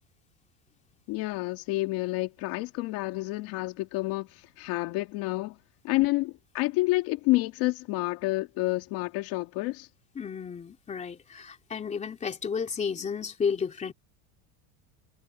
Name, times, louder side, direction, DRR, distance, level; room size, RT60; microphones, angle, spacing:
voice 1, 1.1-5.6 5.8-9.9, left 20 dB, 50° left, 2.2 m, -29 dB
voice 2, 10.1-13.9, left 6 dB, 15° left, 3.0 m, -32 dB
cardioid pair, 175°, 46 cm